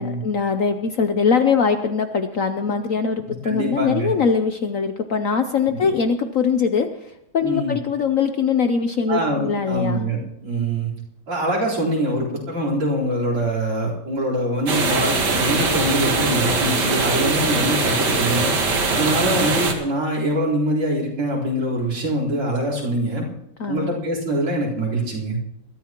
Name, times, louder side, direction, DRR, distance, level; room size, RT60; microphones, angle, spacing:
voice 1, 0.0-10.0 23.6-23.9, left 6 dB, 70° left, 7 dB, 0.7 m, -22 dB
voice 2, 3.4-4.1 7.4-7.7 9.1-10.9 11.3-18.5 18.9-23.2 23.7-25.4, right 1 dB, 80° right, -2 dB, 5.0 m, -24 dB
sound 1, 14.7-19.7, right 3 dB, 55° right, 2.2 m, -21 dB
21.5 x 13.5 x 3.0 m, 0.78 s
omnidirectional pair, 2.3 m